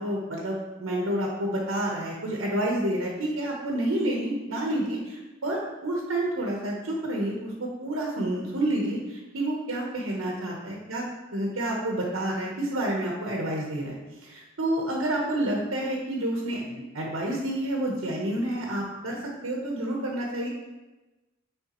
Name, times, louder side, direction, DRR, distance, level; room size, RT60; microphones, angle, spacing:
voice 1, 0.0-11.0 11.3-14.0 14.2-19.2 19.4-20.5, right 1 dB, 85° right, -2 dB, 1.1 m, -29 dB
9.6 x 3.8 x 3.1 m, 1.1 s
head